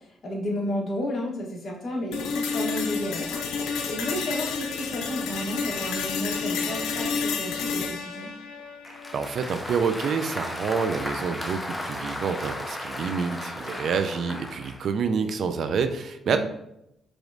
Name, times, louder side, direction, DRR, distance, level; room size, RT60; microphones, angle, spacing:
voice 1, 0.2-8.3 16.3-16.4, left 1 dB, 50° left, -1 dB, 1.1 m, -32 dB
sound 1, 2.1-10.1, left 5 dB, 85° left, 0.5 m, -30 dB
Applause, 8.8-14.9, left 1 dB, 10° left, 0.6 m, -35 dB
voice 2, 9.1-16.4, right 5 dB, 60° right, 8 dB, 0.4 m, -27 dB
4.8 x 3.1 x 2.6 m, 0.82 s
cardioid pair, 90°, 0 cm